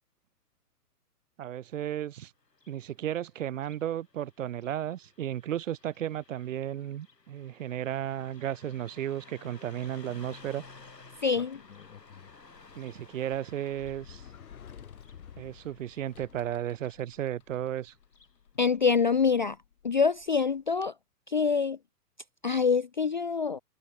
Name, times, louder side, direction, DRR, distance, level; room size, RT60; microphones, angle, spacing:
voice 1, 1.4-2.3 2.7-10.6 12.8-14.2 15.4-17.9, right 11 dB, 50° right, 3.5 m, -34 dB
Car passing by, 2.4-18.4, left 3 dB, 80° left, 7.0 m, -56 dB
Sliding door, 10.6-20.9, left 8 dB, 60° left, 5.5 m, -53 dB
voice 2, 11.2-11.6 18.6-19.6 19.8-20.9 21.3-21.8 22.4-23.6, left 5 dB, 35° left, 0.4 m, -25 dB
figure-of-eight pair, 120°, 48 cm